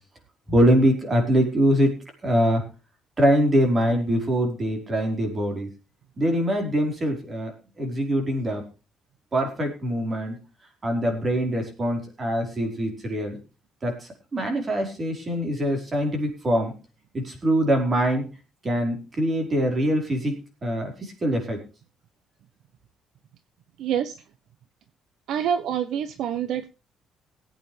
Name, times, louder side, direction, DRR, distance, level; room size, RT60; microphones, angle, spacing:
voice 1, 0.5-1.9 2.2-2.6 3.2-5.7 6.2-7.5 7.8-8.6 9.3-10.4 10.8-13.4 13.8-16.7 17.1-18.3 18.6-20.3 20.6-21.6, equal, 30° right, 3 dB, 4.8 m, -23 dB
voice 2, 23.8-24.2 25.3-26.7, right 9 dB, 75° right, 12 dB, 0.9 m, -26 dB
19.5 x 8.8 x 3.4 m, 0.32 s
cardioid pair, 110°, 0 cm